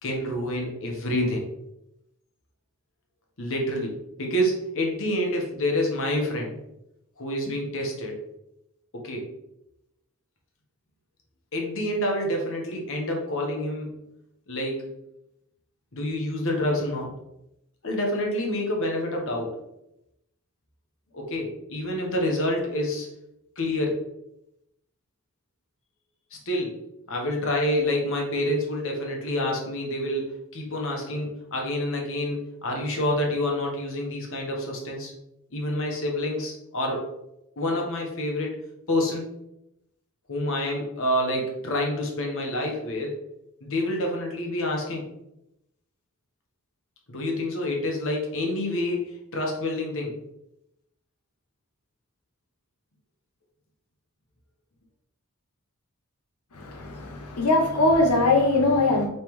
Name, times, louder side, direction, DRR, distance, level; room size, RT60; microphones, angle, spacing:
voice 1, 0.0-1.4 3.4-6.6 7.2-8.2 8.9-9.3 11.5-14.0 14.5-14.9 15.9-17.1 17.8-19.5 21.1-23.1 23.6-24.0 26.3-26.8 27.1-35.1 35.5-37.1 37.6-38.6 38.9-39.3 40.3-43.2 43.6-45.1 47.1-50.1, left 1 dB, 60° left, 0 dB, 1.2 m, -28 dB
voice 2, 56.5-59.1, left 2 dB, 90° left, 1 dB, 0.8 m, -21 dB
5.2 x 3.3 x 3.1 m, 0.84 s
head